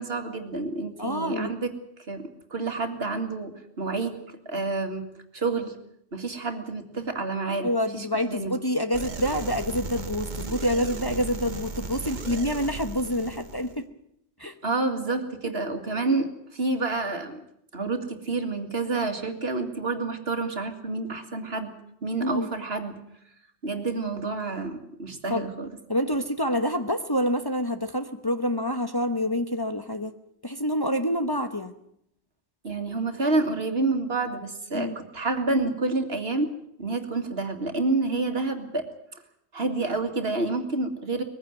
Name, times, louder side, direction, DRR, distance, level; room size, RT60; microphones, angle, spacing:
voice 1, 0.0-1.7 2.1-5.1 5.3-5.8 6.1-8.5 14.6-17.4 17.7-21.7 22.0-23.0 23.6-25.7 32.6-36.5 36.8-38.8 39.5-41.2, right 3 dB, 65° right, 6 dB, 2.4 m, -29 dB
voice 2, 1.0-1.5 7.6-13.9 14.4-14.5 22.1-22.5 25.3-25.5 25.9-30.1 30.4-31.7 34.7-35.0, equal, 20° left, 7 dB, 1.1 m, -27 dB
sound 1, 8.9-13.8, right 3 dB, 45° right, 1.4 m, -36 dB
21.5 x 15.5 x 9.2 m, 0.74 s
omnidirectional pair, 1.1 m